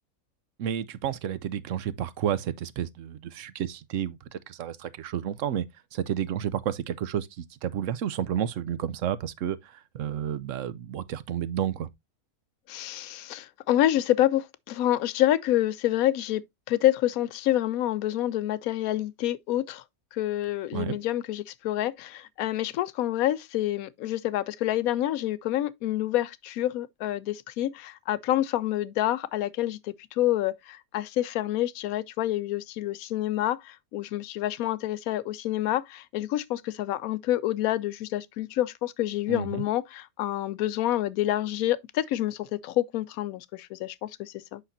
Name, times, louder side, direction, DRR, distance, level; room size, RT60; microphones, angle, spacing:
voice 1, 0.6-5.6 5.9-11.9 20.7-21.0 39.3-39.6, right 9 dB, 65° right, 0.9 m, -31 dB
voice 2, 12.7-19.8 20.1-44.6, left 13 dB, 75° left, 1.0 m, -28 dB
8.2 x 5.7 x 2.7 m
omnidirectional pair, 1.6 m